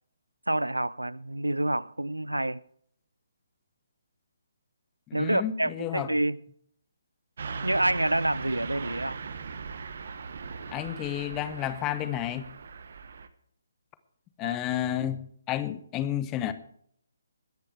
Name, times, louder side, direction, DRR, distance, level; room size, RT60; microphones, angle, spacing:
voice 1, 0.5-2.6 5.1-6.4 7.6-9.2 14.4-14.6, right 1 dB, 80° right, 0.5 m, -28 dB
voice 2, 5.1-6.1 10.7-12.5 14.4-16.5, left 12 dB, 15° left, 0.9 m, -31 dB
Car passing by / Truck, 7.4-13.3, right 5 dB, 50° right, 1.1 m, -39 dB
21.5 x 10.5 x 3.4 m
figure-of-eight pair, 140°, 0 cm